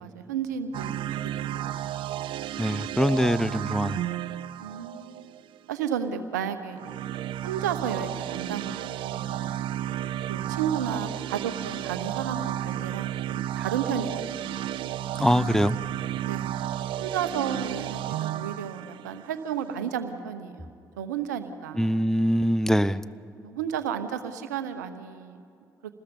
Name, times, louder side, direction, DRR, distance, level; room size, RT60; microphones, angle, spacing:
voice 1, 0.0-1.8 4.6-5.3 5.7-6.8 7.4-9.6 10.3-14.6 16.2-16.6 17.0-20.7 21.0-22.0 23.4-25.4, right 8 dB, 90° right, 1.0 m, -33 dB
sound 1, 0.7-5.6 6.7-19.8, right 12 dB, 65° right, 0.6 m, -33 dB
voice 2, 2.6-4.0 15.2-15.8 21.8-23.0, equal, 5° left, 0.7 m, -23 dB
27.5 x 20.0 x 5.4 m
hypercardioid pair, 50°, 9 cm